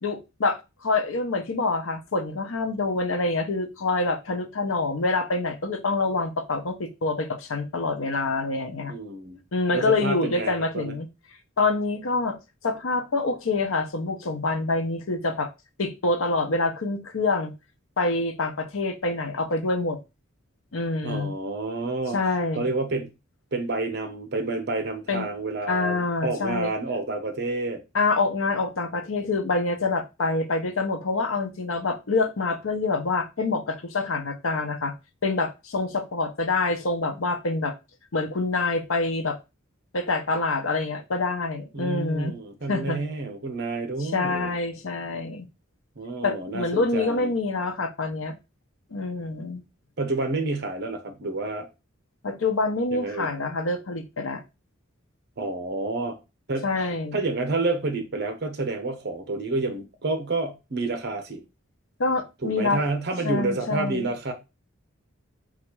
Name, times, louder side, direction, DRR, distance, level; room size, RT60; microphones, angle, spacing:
voice 1, 0.0-8.9 9.5-11.1 11.6-12.4 12.6-15.5 15.8-17.5 18.0-20.0 20.7-21.3 22.1-22.7 25.1-25.3 25.7-26.7 27.9-34.9 35.2-37.7 38.1-39.4 39.9-42.3 42.7-43.0 44.0-45.5 46.2-48.4 48.9-49.6 52.2-54.4 56.6-57.2 62.0-62.8 63.2-64.1, left 3 dB, 90° left, 0.7 m, -26 dB
voice 2, 8.9-9.4 9.7-10.9 21.0-22.2 22.6-23.1 23.5-27.8 41.7-44.5 46.0-47.3 50.0-51.7 52.9-53.3 55.4-56.2 56.5-56.7 57.1-61.4 62.4-64.3, right 2 dB, 55° right, 0.9 m, -29 dB
4.1 x 2.5 x 4.4 m
head